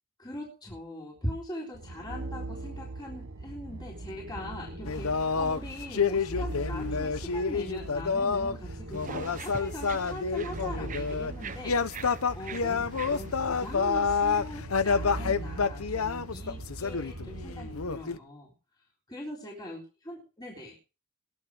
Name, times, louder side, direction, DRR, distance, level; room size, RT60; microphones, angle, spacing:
voice 1, 0.2-12.8 13.1-18.5 19.1-20.8, left 1 dB, 20° left, -3 dB, 3.9 m, -41 dB
sound 1, 1.7-18.0, right 2 dB, 75° right, 1.1 m, -40 dB
sound 2, 4.9-8.6 8.9-11.3 11.6-18.2, left 5 dB, 85° left, 0.8 m, -29 dB
sound 3, 8.9-14.0, right 5 dB, 35° right, 1.0 m, -44 dB
21.0 x 7.4 x 4.8 m, 0.33 s
head